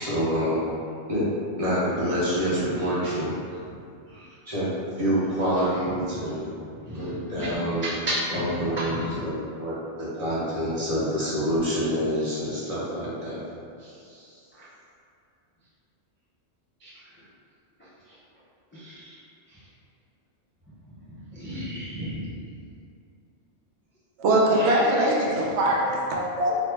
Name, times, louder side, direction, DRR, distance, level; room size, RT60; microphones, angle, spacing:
voice 1, 0.1-0.7 1.1-1.3 1.6-3.4 4.5-4.7 5.0-6.6 6.9-7.9 8.3-13.4, equal, 35° right, -10 dB, 0.8 m, -27 dB
voice 2, 2.8-3.1 3.7-3.8 4.0-4.4 5.9-6.5 6.8-7.6 7.8-9.2 13.8-14.6 16.8-17.2 17.8-18.2 18.7-19.2 19.5-19.6 21.1-22.7 24.5-25.3, equal, 15° left, -11 dB, 0.4 m, -35 dB
voice 3, 24.2-26.6, right 1 dB, 80° right, -3 dB, 0.9 m, -22 dB
3.0 x 2.1 x 3.3 m, 2.5 s
omnidirectional pair, 1.1 m